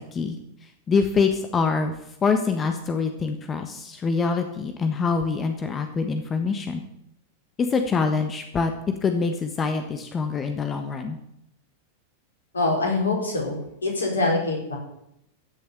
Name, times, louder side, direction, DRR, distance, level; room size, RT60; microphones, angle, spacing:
voice 1, 0.9-1.9 2.2-6.8 7.6-8.7 9.0-11.2, left 5 dB, 20° left, 6 dB, 1.4 m, -25 dB
voice 2, 12.5-14.8, left 2 dB, 70° left, -1 dB, 5.0 m, -24 dB
15.0 x 6.9 x 8.7 m, 0.78 s
figure-of-eight pair, 90°, 0 cm